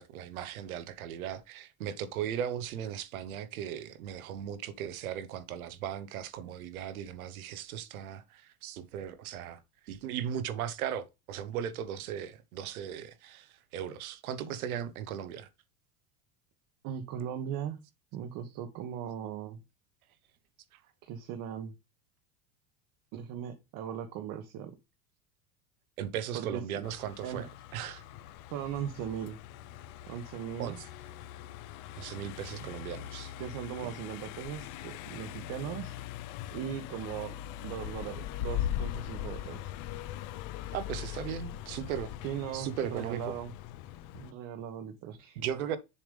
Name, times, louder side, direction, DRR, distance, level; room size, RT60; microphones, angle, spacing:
voice 1, 0.0-15.5 20.7-20.8 26.0-28.0 30.6-30.8 32.0-33.3 33.8-33.9 40.7-42.1 42.5-43.4 45.4-45.8, right 9 dB, 85° right, 1.1 m, -37 dB
voice 2, 16.8-17.8 18.1-19.6 21.1-21.7 23.1-24.7 26.3-26.9 27.2-27.4 28.5-29.4 30.1-30.8 33.4-35.9 36.5-37.4 37.6-39.6 42.2-43.5 44.1-45.4, right 9 dB, 50° right, 1.2 m, -38 dB
Car passing by, 26.8-44.3, left 11 dB, 50° left, 0.7 m, -41 dB
7.0 x 3.4 x 5.2 m
supercardioid pair, 125°, 42 cm